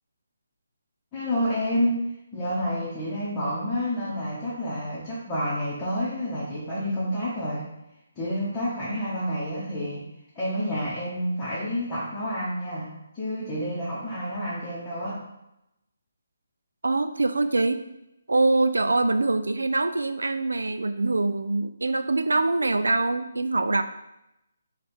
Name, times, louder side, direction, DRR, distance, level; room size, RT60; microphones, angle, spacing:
voice 1, 1.1-2.0 2.3-7.7 8.2-10.1 10.3-12.9 13.1-15.2, equal, 20° left, -10 dB, 0.9 m, -29 dB
voice 2, 16.8-17.8 18.3-23.8, right 2 dB, 85° right, 10 dB, 0.3 m, -24 dB
3.3 x 2.4 x 4.2 m, 0.87 s
figure-of-eight pair, 150°, 0 cm